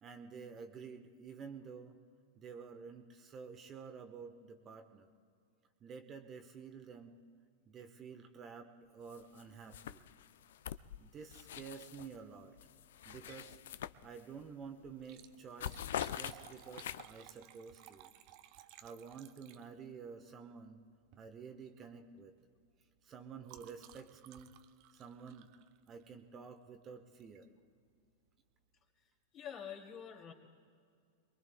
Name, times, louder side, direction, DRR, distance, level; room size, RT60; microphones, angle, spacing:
voice 1, 0.0-2.0 2.4-5.1 5.8-7.2 7.7-10.1 11.0-12.6 13.0-13.6 14.0-18.1 18.8-20.8 21.2-22.4 23.0-24.5 24.9-25.5 25.9-27.5, right 6 dB, 30° right, 6 dB, 1.1 m, -50 dB
sound 1, 9.1-9.4 9.7-12.2 12.6-14.5 14.8-15.1 15.3-17.3, left 11 dB, 65° left, 0.4 m, -44 dB
Liquid, 13.3-13.5 13.9-14.0 14.9-20.0 21.0-21.3 21.6-21.9 22.2-26.3 27.2-27.5 28.0-28.1 28.3-28.4, right 12 dB, 45° right, 0.7 m, -58 dB
voice 2, 29.3-30.3, left 8 dB, 35° left, 2 dB, 2.6 m, -46 dB
27.0 x 22.0 x 2.3 m, 2.2 s
figure-of-eight pair, 95°, 0 cm